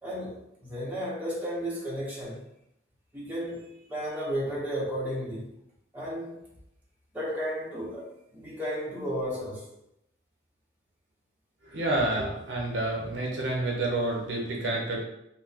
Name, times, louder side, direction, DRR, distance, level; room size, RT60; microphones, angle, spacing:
voice 1, 0.0-2.4 3.1-5.5 5.9-6.4 7.1-9.7, equal, 10° right, -7 dB, 0.8 m, -33 dB
voice 2, 11.7-15.0, right 2 dB, 70° right, -1 dB, 0.8 m, -29 dB
2.6 x 2.1 x 4.0 m, 0.81 s
head